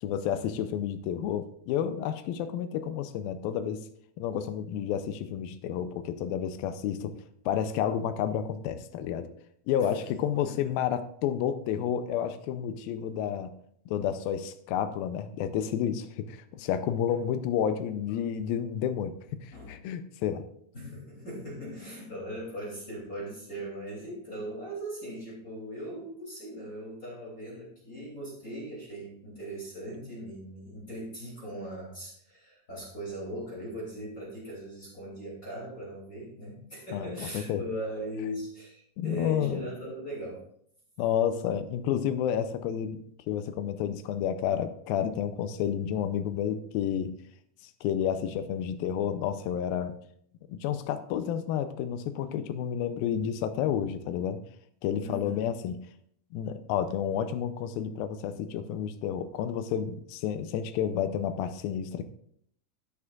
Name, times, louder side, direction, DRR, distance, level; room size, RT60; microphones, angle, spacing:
voice 1, 0.0-3.8 4.2-7.1 7.5-9.3 9.7-13.6 13.9-20.4 36.9-37.6 39.0-39.6 41.0-43.0 43.3-47.2 47.8-50.0 50.5-54.4 54.8-55.8 56.3-62.0, left 9 dB, 90° left, 10 dB, 2.4 m, -30 dB
voice 2, 20.7-40.4 55.0-55.4, equal, 25° left, -6 dB, 3.2 m, -39 dB
15.5 x 8.6 x 2.5 m, 0.66 s
omnidirectional pair, 4.2 m